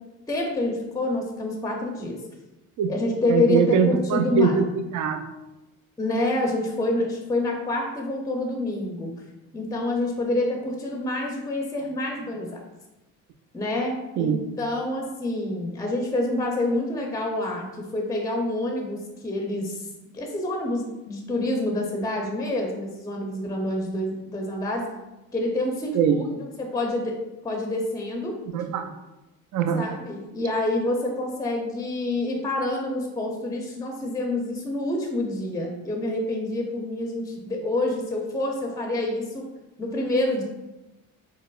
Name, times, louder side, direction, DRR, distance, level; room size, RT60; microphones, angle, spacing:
voice 1, 0.3-2.2 2.9-4.6 6.0-9.1 9.5-12.6 13.5-19.9 20.1-24.8 25.3-27.2 27.4-28.4 29.8-39.4 39.8-40.4, left 2 dB, 10° left, 1 dB, 0.5 m, -27 dB
voice 2, 3.3-4.7 4.9-5.2 14.2-14.4 25.9-26.2 28.5-28.9 29.5-29.9, right 7 dB, 55° right, 8 dB, 0.5 m, -22 dB
4.7 x 2.0 x 2.3 m, 1.0 s
supercardioid pair, 90°, 36 cm